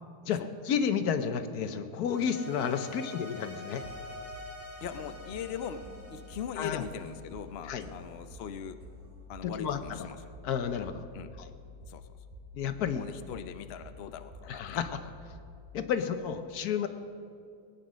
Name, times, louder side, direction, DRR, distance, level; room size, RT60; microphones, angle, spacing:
voice 1, 0.2-3.8 6.6-6.8 7.7-7.9 9.4-10.1 10.4-11.0 11.4-11.5 12.5-13.4 14.5-15.0 15.7-16.9, left 7 dB, 75° left, 9 dB, 1.3 m, -31 dB
sound 1, 2.0-7.4, left 1 dB, 10° right, 2.4 m, -46 dB
sound 2, 3.8-15.8, left 2 dB, 60° right, 2.6 m, -50 dB
voice 2, 4.8-8.8 9.3-10.2 11.1-11.3 11.9-12.0 13.0-14.8, left 8 dB, 55° left, 9 dB, 0.7 m, -40 dB
19.0 x 9.5 x 6.3 m, 2.4 s
omnidirectional pair, 1.7 m